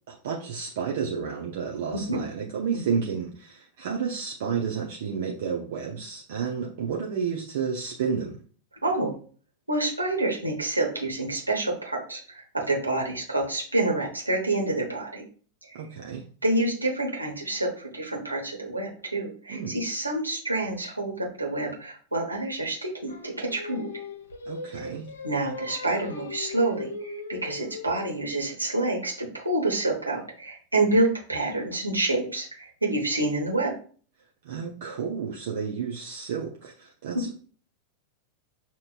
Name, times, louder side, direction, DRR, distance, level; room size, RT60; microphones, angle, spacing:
voice 1, 0.1-8.4 15.7-16.2 19.5-19.8 24.5-25.1 34.4-37.4, right 6 dB, 55° right, -1 dB, 0.7 m, -31 dB
voice 2, 8.8-9.2 9.7-15.2 16.4-23.9 25.2-33.7, right 2 dB, 85° right, -2 dB, 1.2 m, -28 dB
Singing, 23.1-28.3, left 4 dB, 65° left, 0.7 m, -39 dB
6.4 x 2.9 x 2.4 m, 0.42 s
figure-of-eight pair, 90°, 0 cm